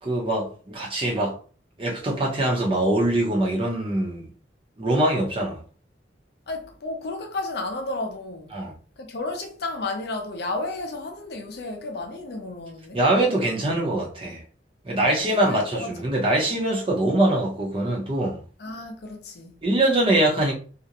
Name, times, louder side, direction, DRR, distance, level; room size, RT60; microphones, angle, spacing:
voice 1, 0.0-1.4 1.8-4.3 4.8-5.6 8.5-8.7 12.9-14.4 14.8-18.4 19.6-20.5, right 1 dB, 30° right, 0.6 m, -23 dB
voice 2, 6.5-8.5 9.0-13.0 15.0-15.2 15.7-15.9 18.6-19.5, left 2 dB, 60° left, 0.5 m, -32 dB
2.4 x 2.1 x 2.7 m
head